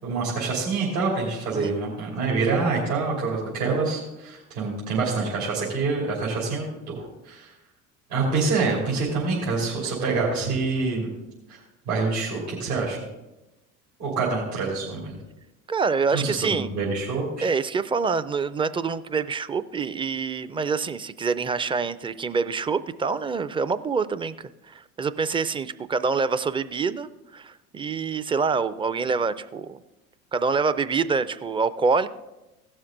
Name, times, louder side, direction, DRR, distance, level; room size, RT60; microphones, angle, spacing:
voice 1, 0.0-7.5 8.1-11.1 11.5-11.6 11.8-13.0 14.0-15.2 16.1-17.5, right 4 dB, 85° right, -6 dB, 3.2 m, -26 dB
voice 2, 15.7-16.7 17.4-29.8 30.3-32.1, right 5 dB, 15° right, 14 dB, 0.4 m, -26 dB
17.0 x 6.2 x 3.8 m, 1.0 s
hypercardioid pair, 70°, 44 cm